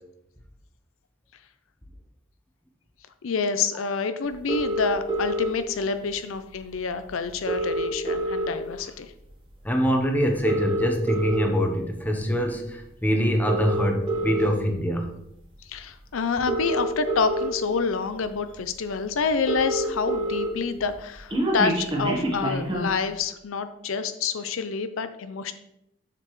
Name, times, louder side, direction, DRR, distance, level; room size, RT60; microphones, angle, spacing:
voice 1, 3.2-9.1 15.6-25.6, left 5 dB, 75° left, 10 dB, 0.5 m, -28 dB
sound 1, 4.5-5.5 6.7-6.8 7.0-7.1 7.3-8.8 9.2-9.5 10.3-11.5 12.2-12.4 13.3-14.5 15.7-15.8 16.3-17.5 18.2-18.3 18.6-18.7 18.9-19.0 19.2-20.5 20.8-23.0, right 1 dB, 25° right, 1.2 m, -27 dB
voice 2, 9.6-15.1, equal, 10° left, 3 dB, 0.8 m, -24 dB
7.4 x 6.7 x 3.1 m, 0.81 s
head